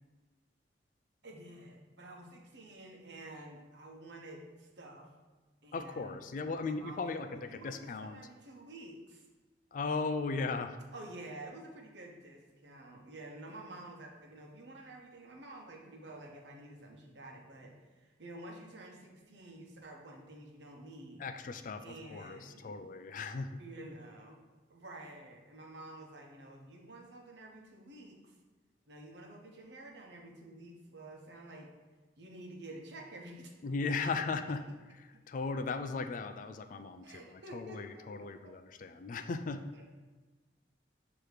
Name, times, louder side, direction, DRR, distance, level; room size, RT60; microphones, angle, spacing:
voice 1, 1.2-5.2 5.6-6.3 6.6-9.3 10.9-21.2 21.8-22.8 23.6-24.4 24.7-28.4 28.9-31.7 32.2-33.5 34.0-34.1 37.0-38.5 39.8-39.9, right 1 dB, 80° right, 1 dB, 1.0 m, -50 dB
voice 2, 5.7-8.2 9.7-10.8 21.2-23.6 33.6-34.6 35.0-39.6, left 4 dB, 45° left, 9 dB, 0.3 m, -37 dB
6.4 x 3.0 x 4.9 m, 1.3 s
head